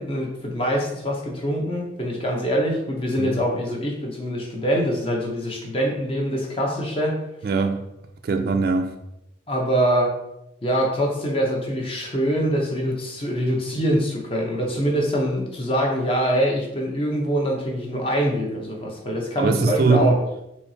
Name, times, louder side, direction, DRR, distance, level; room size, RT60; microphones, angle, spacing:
voice 1, 0.0-7.2 9.5-10.1 10.6-20.1, equal, 30° left, 0.7 m, -24 dB
voice 2, 7.4-7.8 8.2-8.9 19.4-20.1, right 4 dB, 50° right, 0.3 m, -21 dB
4.3 x 2.8 x 2.7 m
head